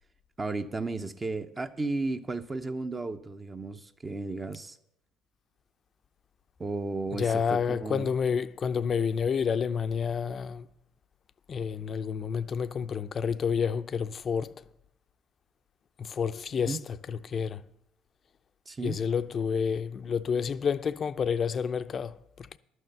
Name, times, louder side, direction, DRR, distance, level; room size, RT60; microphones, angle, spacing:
voice 1, 0.4-4.8 6.6-8.1 16.7-16.8 18.7-19.0, right 3 dB, 25° right, 0.7 m, -34 dB
voice 2, 7.1-10.7 11.5-14.6 16.0-17.6 18.8-22.6, left 6 dB, 45° left, 0.6 m, -29 dB
11.5 x 6.4 x 7.9 m
hypercardioid pair, 70°, 0 cm